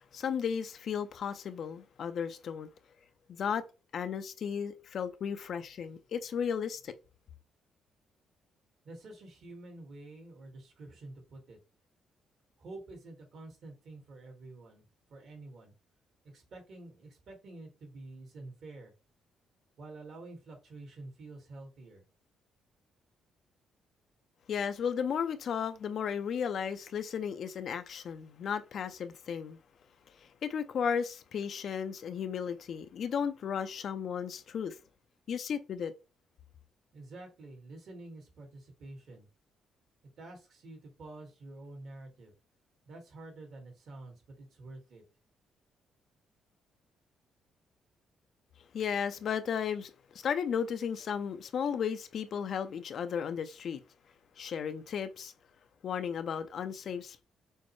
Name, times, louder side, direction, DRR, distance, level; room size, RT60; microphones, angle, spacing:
voice 1, 0.0-2.7 3.3-3.6 3.9-6.9 24.5-29.6 30.2-34.8 35.3-35.9 48.7-53.8 54.4-55.3 55.8-57.2, left 7 dB, 60° left, 0.5 m, -34 dB
voice 2, 8.8-11.6 12.6-15.7 16.3-18.9 19.8-22.0 36.9-39.3 40.2-42.3 42.9-45.0, right 2 dB, 65° right, 1.9 m, -48 dB
6.3 x 2.1 x 3.1 m
cardioid pair, 90°, 0 cm